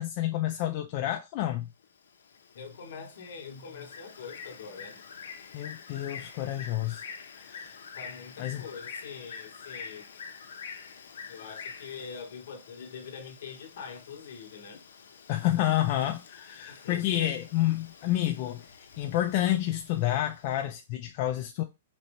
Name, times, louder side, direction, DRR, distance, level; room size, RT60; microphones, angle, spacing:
voice 1, 0.0-1.7 5.5-7.0 7.4-7.8 8.4-8.6 15.3-18.7 19.0-21.6, left 13 dB, 35° left, 0.3 m, -29 dB
Bird, 1.8-20.6, left 6 dB, 90° left, 0.5 m, -47 dB
voice 2, 2.5-5.0 7.9-10.2 11.3-14.8 16.7-17.3, left 6 dB, 65° left, 0.9 m, -44 dB
4.0 x 2.1 x 2.9 m
hypercardioid pair, 160°, 0 cm